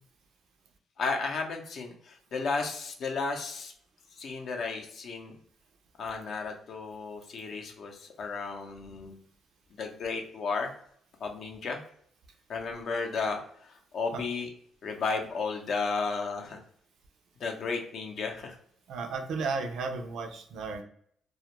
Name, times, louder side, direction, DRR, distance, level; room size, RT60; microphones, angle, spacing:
voice 1, 1.0-3.7 4.1-5.4 6.0-9.2 9.7-10.7 11.2-11.8 12.5-14.5 14.8-16.6 17.4-18.6, left 4 dB, 65° left, 3 dB, 0.5 m, -33 dB
voice 2, 18.9-20.8, right 4 dB, 75° right, 4 dB, 0.4 m, -34 dB
2.3 x 2.1 x 2.9 m, 0.63 s
cardioid pair, 90°, 0 cm